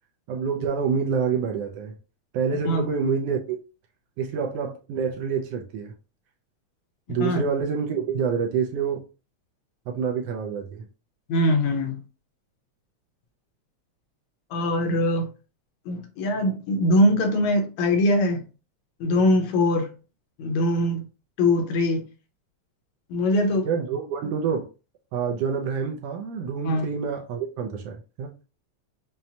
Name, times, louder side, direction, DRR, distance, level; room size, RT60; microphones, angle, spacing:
voice 1, 0.3-1.9 2.3-3.6 4.2-5.9 7.1-9.0 9.9-10.9 23.6-24.7 25.1-28.3, right 6 dB, 80° right, 1.4 m, -27 dB
voice 2, 11.3-12.0 14.5-15.3 15.9-18.4 19.0-19.9 20.4-21.0 21.4-22.1 23.1-23.7 26.6-26.9, left 1 dB, 75° left, 2.1 m, -22 dB
5.7 x 2.1 x 2.7 m
omnidirectional pair, 3.3 m